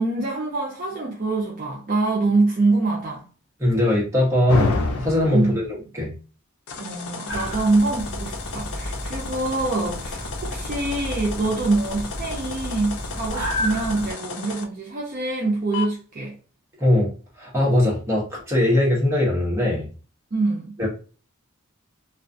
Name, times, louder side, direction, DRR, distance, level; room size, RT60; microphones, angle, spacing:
voice 1, 0.0-3.2 5.3-5.6 6.8-16.3 20.3-20.7, right 3 dB, 40° right, 0.5 m, -24 dB
voice 2, 3.6-5.7 5.9-6.1 16.8-17.1 17.4-19.9 20.8-20.9, left 1 dB, 15° right, 0.8 m, -20 dB
sound 1, 4.5-5.6 6.7-14.6 15.7-15.8, left 4 dB, 80° left, 0.4 m, -32 dB
sound 2, 7.3-14.1, equal, 45° left, 0.9 m, -32 dB
2.3 x 2.2 x 2.5 m
head